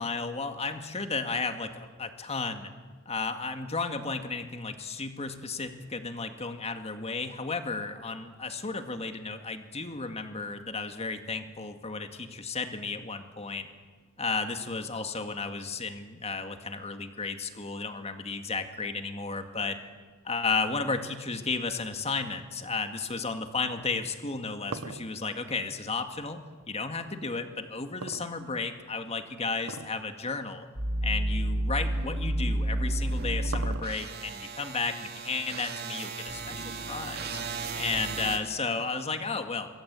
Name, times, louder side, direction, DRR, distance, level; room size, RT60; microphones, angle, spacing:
voice 1, 0.0-2.7 3.1-13.7 14.2-19.8 20.2-26.4 26.7-30.7 31.0-37.3 37.8-39.7, left 4 dB, 30° left, 7 dB, 2.1 m, -33 dB
sound 1, 24.2-26.6 28.0-28.9 29.6-30.0 30.4-30.5 31.2-31.4 32.7-34.2, right 3 dB, 75° right, 1.2 m, -41 dB
sound 2, 30.7-38.4, right 1 dB, 50° right, 2.7 m, -32 dB
26.5 x 22.5 x 8.5 m, 1.4 s
head